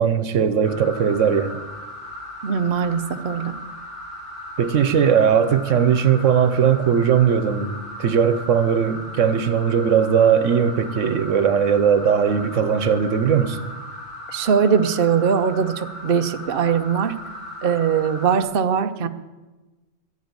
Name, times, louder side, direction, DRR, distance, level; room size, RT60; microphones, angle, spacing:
voice 1, 0.0-1.6 4.6-13.6, right 7 dB, 90° right, 11 dB, 1.2 m, -19 dB
sound 1, 0.6-18.4, equal, 65° left, 3.7 m, -37 dB
voice 2, 2.4-3.5 14.3-17.1 17.6-19.1, right 7 dB, 55° right, 9 dB, 0.9 m, -21 dB
12.5 x 8.3 x 9.6 m, 1.2 s
omnidirectional pair, 1.3 m